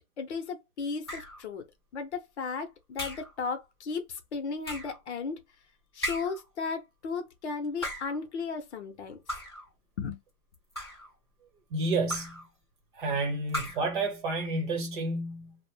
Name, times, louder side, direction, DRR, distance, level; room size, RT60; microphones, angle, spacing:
voice 1, 0.2-1.6 1.9-5.4 5.9-9.2 10.0-10.2, left 5 dB, 50° left, 0.7 m, -35 dB
sound 1, 1.1-1.5 3.0-3.4 4.6-5.0 6.0-6.5 7.6-8.2 9.3-9.7 10.5-11.1 12.1-12.5 13.5-14.0, equal, 20° left, 0.3 m, -37 dB
voice 2, 11.7-12.4 13.0-15.6, right 2 dB, 35° right, 0.9 m, -30 dB
2.4 x 2.1 x 3.2 m
hypercardioid pair, 160°, 43 cm